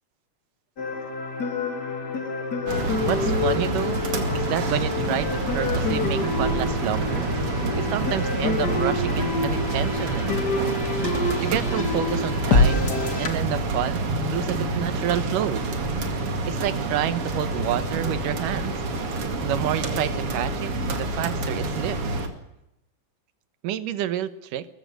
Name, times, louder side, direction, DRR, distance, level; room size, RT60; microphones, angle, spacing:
sound 1, 0.8-13.3, left 3 dB, 35° left, 2.4 m, -27 dB
sound 2, 2.7-22.3, right 2 dB, 45° right, 3.0 m, -27 dB
voice 1, 3.1-4.0 4.3-7.3 7.7-10.4 11.4-15.7 16.5-18.7 19.4-20.7 21.0-22.0 23.6-24.7, right 11 dB, 90° right, 14 dB, 2.7 m, -29 dB
22.0 x 14.5 x 9.4 m, 0.88 s
omnidirectional pair, 3.7 m